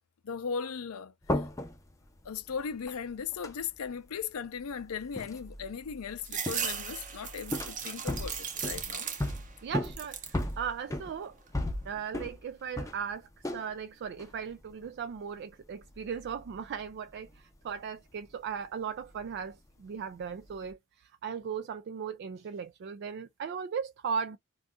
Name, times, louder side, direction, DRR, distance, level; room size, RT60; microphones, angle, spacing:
voice 1, 0.2-1.4 2.2-9.1, left 6 dB, 80° left, 0.5 m, -38 dB
sound 1, 1.2-13.7 14.0-15.1 15.5-17.9 18.1-19.7 20.1-20.7, left 1 dB, 15° left, 0.5 m, -38 dB
sound 2, 6.2-9.5 9.8-10.4 10.9-11.6, right 7 dB, 35° right, 0.7 m, -37 dB
voice 2, 9.6-11.3 11.9-24.4, right 7 dB, 50° right, 0.3 m, -37 dB
2.6 x 2.3 x 3.6 m
head